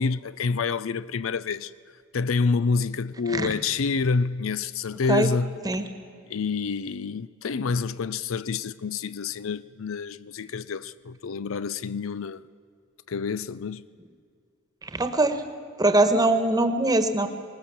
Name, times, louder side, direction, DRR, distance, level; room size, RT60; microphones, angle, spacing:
voice 1, 0.0-1.7 2.1-5.6 6.3-12.4 13.1-13.9, left 4 dB, 75° left, 0.5 m, -28 dB
voice 2, 14.8-15.4 15.8-17.3, right 2 dB, 20° right, 1.3 m, -22 dB
20.5 x 19.0 x 7.1 m
head